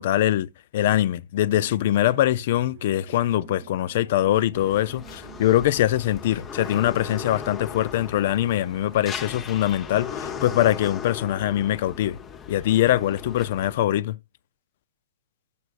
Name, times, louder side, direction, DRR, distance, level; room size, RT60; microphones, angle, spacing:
voice 1, 0.0-12.2 12.5-14.2, left 13 dB, 60° left, 0.5 m, -23 dB
sound 1, 1.5-10.8, right 8 dB, 55° right, 0.7 m, -47 dB
sound 2, 4.5-13.7, left 7 dB, 25° left, 0.8 m, -38 dB
12.5 x 6.8 x 2.5 m
hypercardioid pair, 135°, 0 cm